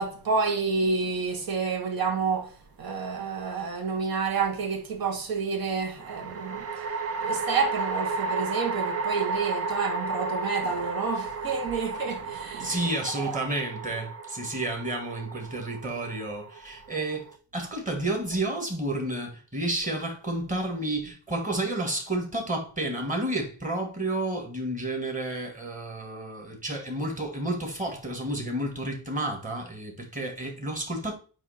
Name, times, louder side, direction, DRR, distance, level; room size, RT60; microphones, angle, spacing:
voice 1, 0.0-2.5 2.8-6.7 7.2-12.8 13.2-13.3, right 5 dB, 55° right, 1.7 m, -29 dB
sound 1, 2.9-3.6 6.0-17.3, right 3 dB, 35° right, 0.6 m, -33 dB
voice 2, 12.6-31.1, right 1 dB, 20° right, 1.9 m, -31 dB
8.7 x 2.9 x 4.2 m
cardioid pair, 155°, 42 cm